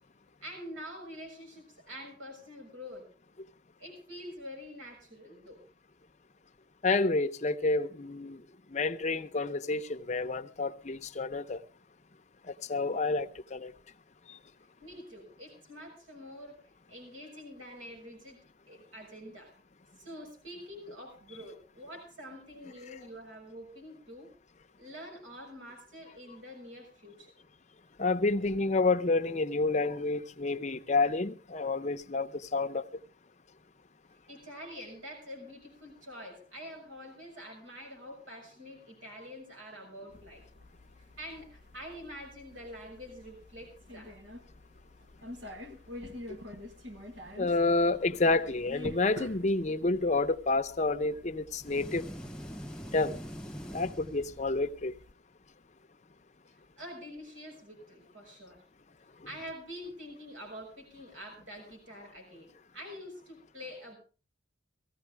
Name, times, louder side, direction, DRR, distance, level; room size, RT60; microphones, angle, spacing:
voice 1, 0.4-3.0 3.8-5.6 14.8-16.6 16.9-19.5 20.0-24.3 24.8-27.3 34.3-40.4 41.2-44.1 56.8-58.6 59.2-64.0, equal, 80° right, 6.4 m, -46 dB
voice 2, 6.8-8.4 8.7-11.6 12.4-13.7 14.3-14.4 28.0-33.0 47.4-52.0 52.9-53.2 53.7-54.9, left 3 dB, 35° left, 0.7 m, -29 dB
sound 1, 40.1-55.1, left 1 dB, 60° right, 1.4 m, -49 dB
sound 2, 51.6-54.8, equal, 5° left, 0.8 m, -43 dB
19.0 x 15.0 x 3.4 m
head